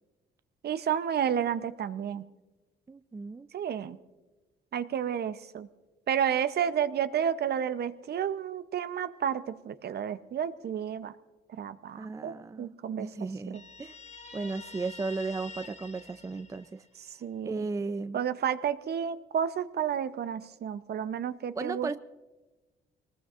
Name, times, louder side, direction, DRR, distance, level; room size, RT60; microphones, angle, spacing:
voice 1, 0.6-2.2 3.5-4.0 4.7-5.7 6.1-11.1 11.6-13.1 13.5-13.6 17.2-17.7 18.1-22.0, right 8 dB, 55° right, 13 dB, 0.7 m, -31 dB
voice 2, 2.9-3.5 12.0-12.7 13.0-14.0 14.3-16.8 17.4-18.2 21.6-22.0, right 3 dB, 15° right, 13 dB, 0.4 m, -35 dB
Guitar, 13.5-17.1, left 4 dB, 35° left, 1.2 m, -47 dB
24.0 x 20.0 x 2.5 m, 1.2 s
cardioid pair, 90°, 20 cm